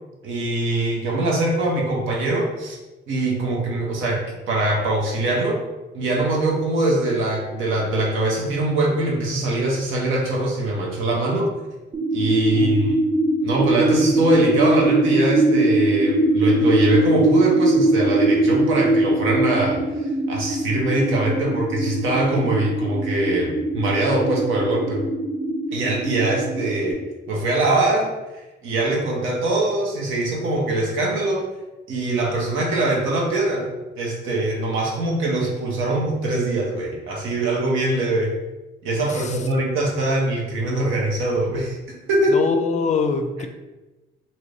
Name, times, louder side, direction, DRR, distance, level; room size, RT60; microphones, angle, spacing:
voice 1, 0.2-2.8 3.1-5.6 5.9-11.5 12.1-13.0 13.4-25.0 25.7-27.0 27.3-28.1 28.6-31.5 31.9-33.7 34.0-38.4 38.8-41.8 42.1-42.4, right 2 dB, 90° right, -2 dB, 0.8 m, -22 dB
sound 1, 11.9-26.9, right 1 dB, 35° right, 0.9 m, -21 dB
voice 2, 39.1-39.5 42.3-43.5, left 5 dB, 35° left, 7 dB, 0.4 m, -24 dB
2.7 x 2.5 x 3.2 m, 1.1 s
cardioid pair, 90°, 20 cm